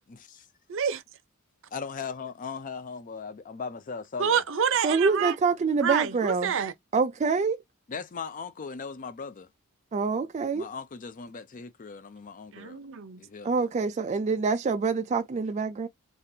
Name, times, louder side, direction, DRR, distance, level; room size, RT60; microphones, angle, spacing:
voice 1, 0.1-0.5 1.7-4.4 6.5-6.7 7.9-9.5 10.5-12.8 13.2-13.6, left 5 dB, 35° left, 0.5 m, -38 dB
voice 2, 0.7-1.0 4.2-5.3 5.8-6.7 12.5-13.2, right 7 dB, 60° right, 0.7 m, -27 dB
voice 3, 4.8-6.5 6.9-7.6 9.9-10.6 13.4-15.9, right 4 dB, 30° right, 0.3 m, -26 dB
4.1 x 2.5 x 2.7 m
head